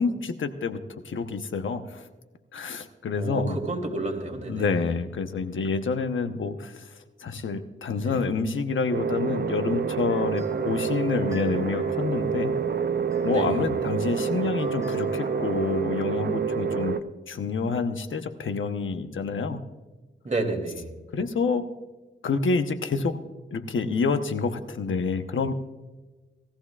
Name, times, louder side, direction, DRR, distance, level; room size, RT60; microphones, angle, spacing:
voice 1, 0.0-2.1 2.5-3.6 4.5-12.6 13.2-17.0 17.3-19.6 21.1-21.7 22.2-23.2 23.5-25.5, left 4 dB, 75° left, 8 dB, 1.0 m, -28 dB
voice 2, 3.1-4.6 8.0-8.2 13.3-13.7 20.2-20.9, right 2 dB, 35° right, 2 dB, 2.9 m, -30 dB
sound 1, 8.9-17.0, right 6 dB, 55° right, 0.7 m, -28 dB
sound 2, 10.1-15.8, equal, 15° right, 3.3 m, -42 dB
18.5 x 14.5 x 2.4 m, 1.2 s
cardioid pair, 55°, 20 cm